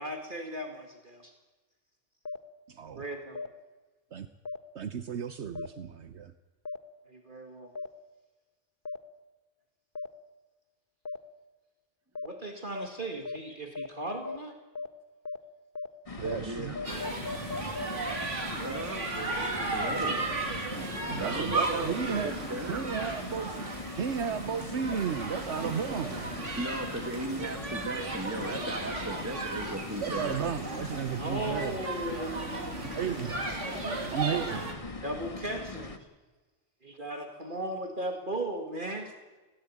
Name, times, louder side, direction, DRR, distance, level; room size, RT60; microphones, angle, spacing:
voice 1, 0.0-1.3 2.9-3.4 7.1-7.7 12.2-14.6 19.1-19.3 19.8-20.2 31.2-33.2 33.5-34.0 35.0-36.1 36.8-39.1, right 1 dB, 45° right, 3 dB, 2.4 m, -37 dB
sound 1, 2.2-2.4 3.3-3.5 4.4-4.6 5.5-5.7 6.6-6.8 7.7-7.9 8.8-9.0 9.9-10.1 11.0-11.2 12.1-12.3 12.7-12.9 13.2-13.4 13.7-13.9 14.2-14.4 14.7-14.9 15.2-15.4 15.7-15.9 16.2-16.4 16.7-17.9, left 4 dB, 45° left, 1.7 m, -36 dB
voice 2, 2.7-3.0 4.1-4.3 4.7-6.3 16.2-16.8 21.0-22.4 22.7-23.7 24.0-26.3 30.0-31.8 32.8-33.3 34.1-34.7, right 7 dB, 70° right, 10 dB, 1.2 m, -33 dB
sound 2, 16.1-36.0, left 3 dB, 30° left, 1.5 m, -41 dB
voice 3, 16.4-16.8 18.6-19.0 19.7-20.2 21.1-22.9 26.6-30.4, right 1 dB, 15° right, 8 dB, 1.2 m, -37 dB
sound 3, 16.8-34.7, right 3 dB, 90° right, 3.0 m, -35 dB
20.0 x 17.5 x 8.8 m, 1.2 s
omnidirectional pair, 1.2 m